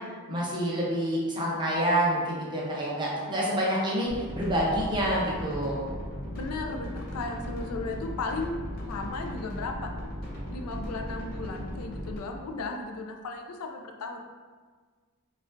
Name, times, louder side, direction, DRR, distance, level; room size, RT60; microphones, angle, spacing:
voice 1, 0.3-5.8, equal, 20° right, -6 dB, 0.7 m, -27 dB
sound 1, 4.1-12.2, equal, 40° left, 0.9 m, -37 dB
voice 2, 6.4-9.9 10.5-14.2, left 3 dB, 85° left, 3 dB, 0.4 m, -35 dB
4.9 x 2.4 x 2.5 m, 1.5 s
head